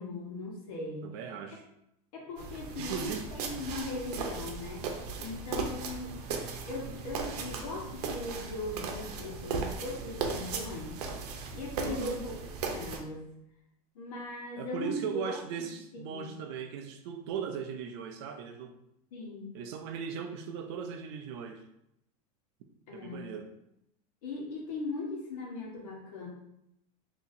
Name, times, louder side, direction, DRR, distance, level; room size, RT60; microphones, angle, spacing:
voice 1, 0.0-1.1 2.1-4.8 5.2-6.2 6.7-11.0 11.5-12.3 12.6-13.2 13.9-15.4 15.9-16.3 19.1-19.5 22.9-23.2 24.2-26.3, left 2 dB, 65° left, -2 dB, 1.2 m, -39 dB
voice 2, 1.0-1.6 2.8-3.3 11.8-12.2 14.6-18.8 19.5-21.6 22.9-23.5, right 7 dB, 45° right, 6 dB, 0.4 m, -38 dB
sound 1, 2.4-13.0, right 5 dB, 90° right, 0.7 m, -37 dB
4.0 x 2.8 x 2.6 m, 0.80 s
supercardioid pair, 175°, 20 cm